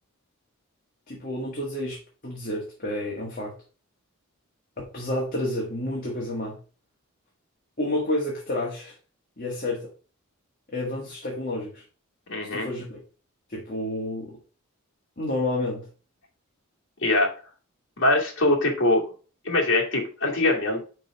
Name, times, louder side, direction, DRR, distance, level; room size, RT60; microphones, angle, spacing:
voice 1, 1.1-3.5 4.8-6.6 7.8-8.9 9.4-9.9 10.7-11.8 12.5-13.0 13.5-14.4 15.2-15.9, left 1 dB, 40° left, -3 dB, 1.6 m, -30 dB
voice 2, 12.3-12.7 17.0-17.3 18.0-19.0 19.4-20.8, left 2 dB, 55° left, -3 dB, 2.4 m, -22 dB
5.3 x 4.9 x 5.2 m, 0.37 s
head